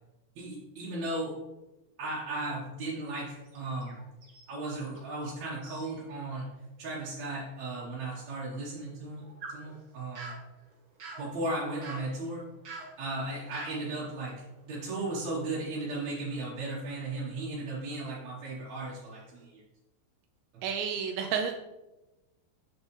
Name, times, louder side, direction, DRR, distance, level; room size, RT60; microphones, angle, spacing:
voice 1, 0.4-1.4 2.0-4.0 4.5-6.5 6.8-10.3 11.2-12.4 13.0-19.6 20.5-20.6, right 2 dB, 60° right, -7 dB, 2.4 m, -36 dB
sound 1, 3.4-5.4 5.6-6.0 6.4-6.5 7.2-7.3 8.8-15.5 15.9-17.4 18.0-18.2 18.7-19.4, right 3 dB, 45° right, 1.3 m, -50 dB
voice 2, 20.6-21.5, right 7 dB, 90° right, 4 dB, 2.3 m, -30 dB
7.6 x 6.2 x 3.2 m, 1.0 s
omnidirectional pair, 4.0 m